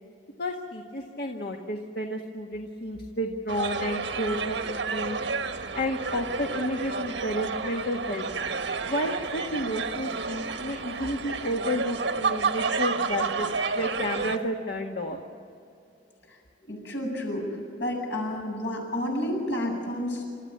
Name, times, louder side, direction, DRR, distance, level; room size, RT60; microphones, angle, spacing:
voice 1, 0.4-5.2 5.7-8.2 8.9-13.5 13.7-15.2, equal, 60° left, 2 dB, 1.7 m, -31 dB
sound 1, 3.5-14.4, right 4 dB, 85° right, 1.5 m, -30 dB
voice 2, 16.7-20.2, left 1 dB, 75° left, 0 dB, 7.7 m, -30 dB
29.0 x 13.5 x 8.6 m, 2.6 s
head